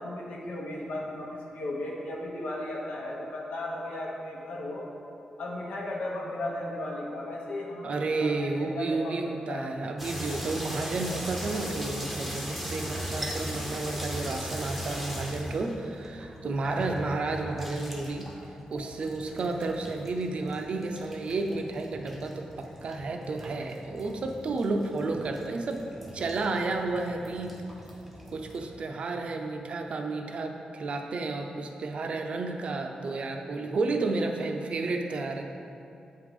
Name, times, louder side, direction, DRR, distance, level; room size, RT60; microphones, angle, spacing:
voice 1, 0.0-4.9 5.4-9.1 9.5-9.7, left 1 dB, 85° left, -3 dB, 1.0 m, -35 dB
voice 2, 7.8-18.3 18.7-25.8 26.1-27.6 28.3-35.4, right 3 dB, 50° right, 4 dB, 0.5 m, -31 dB
sound 1, 10.0-28.8, equal, ahead, 0.7 m, -39 dB
7.8 x 3.7 x 4.9 m, 2.7 s
wide cardioid pair, 150°, 2 cm